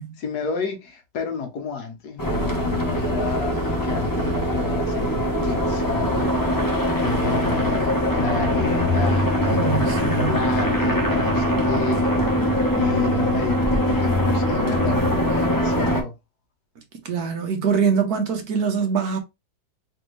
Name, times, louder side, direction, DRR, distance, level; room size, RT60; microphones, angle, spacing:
voice 1, 0.2-12.1 12.7-16.1, left 5 dB, 65° left, 1.4 m, -30 dB
sound 1, 2.2-16.0, equal, 25° left, 0.4 m, -22 dB
voice 2, 9.5-10.3 17.0-19.2, right 6 dB, 65° right, 1.3 m, -23 dB
3.4 x 3.4 x 3.0 m
omnidirectional pair, 1.8 m